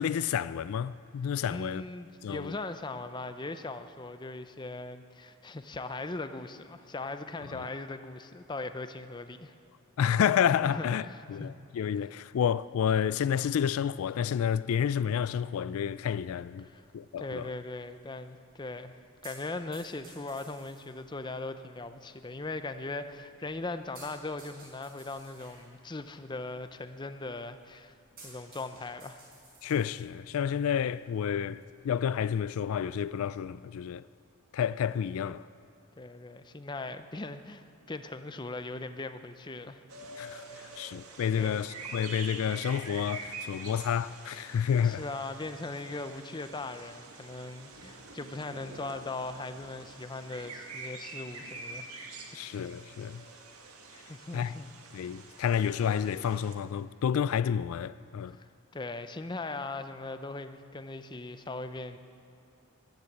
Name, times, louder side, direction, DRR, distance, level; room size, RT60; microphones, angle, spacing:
voice 1, 0.0-1.8 2.2-2.5 7.5-7.6 10.0-16.7 16.9-17.5 29.6-34.0 34.5-35.5 40.2-45.0 52.3-53.2 54.3-54.5 54.9-58.4, left 8 dB, 75° left, 0.3 m, -30 dB
voice 2, 1.5-9.5 10.6-11.6 16.6-16.8 17.2-27.9 28.2-29.2 36.0-39.8 40.7-40.9 41.4-41.6 44.8-51.9 54.1-54.7 58.3-58.5 58.7-62.0, left 2 dB, 20° left, 0.5 m, -39 dB
sound 1, 15.7-33.2, right 2 dB, 45° right, 5.3 m, -58 dB
sound 2, 39.9-56.6, right 3 dB, 85° right, 1.8 m, -46 dB
15.0 x 11.5 x 8.0 m
head